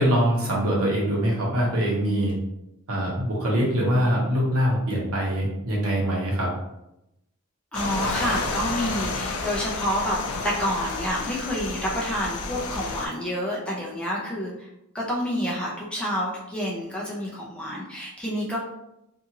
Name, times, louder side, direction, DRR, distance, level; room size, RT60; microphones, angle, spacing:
voice 1, 0.0-2.3 2.9-6.5, equal, 75° right, -4 dB, 1.0 m, -23 dB
sound 1, 7.7-13.1, left 3 dB, 85° left, 0.4 m, -30 dB
voice 2, 7.7-14.7 14.9-18.6, equal, 5° left, -5 dB, 0.5 m, -28 dB
2.7 x 2.4 x 2.8 m, 0.87 s
head